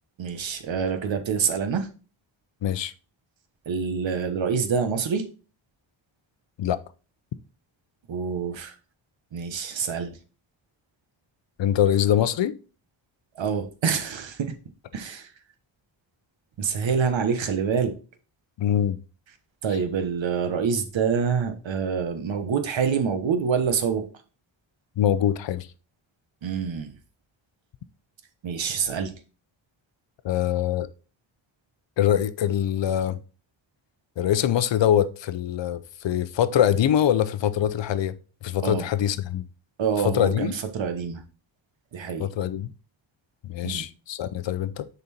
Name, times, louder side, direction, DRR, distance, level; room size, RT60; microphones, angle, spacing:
voice 1, 0.2-1.9 3.7-5.2 8.1-8.7 9.3-10.2 13.4-14.5 14.9-15.3 16.6-17.9 19.6-24.0 26.4-27.0 28.4-29.1 38.6-38.8 39.8-41.2 41.9-42.3 43.6-43.8, right 6 dB, 65° right, 1.3 m, -26 dB
voice 2, 2.6-2.9 6.6-6.8 11.6-12.6 18.6-19.0 25.0-25.7 30.2-30.9 32.0-33.2 34.2-38.2 38.4-39.4 40.0-40.5 42.2-42.7 43.4-44.9, left 10 dB, 65° left, 0.7 m, -23 dB
6.7 x 4.3 x 4.3 m
cardioid pair, 80°, 49 cm